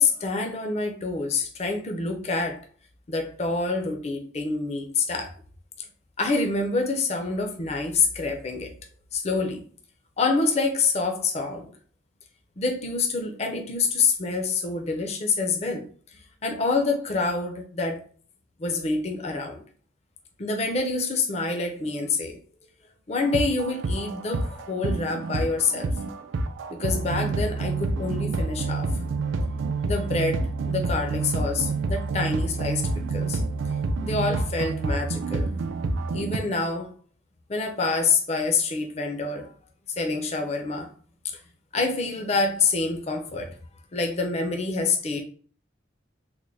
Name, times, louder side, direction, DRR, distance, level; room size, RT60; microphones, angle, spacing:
voice 1, 0.0-2.7 3.1-5.3 6.2-8.7 9.1-9.6 10.2-11.7 12.6-18.1 18.6-19.6 20.4-22.4 23.1-25.9 26.7-29.0 29.8-33.4 34.0-35.5 36.1-36.9 37.5-39.5 40.0-40.9 41.7-43.6 43.9-45.2, left 4 dB, 30° left, 0.4 m, -27 dB
sound 1, 23.2-36.4, right 3 dB, 75° right, 0.4 m, -28 dB
3.6 x 2.1 x 3.2 m
head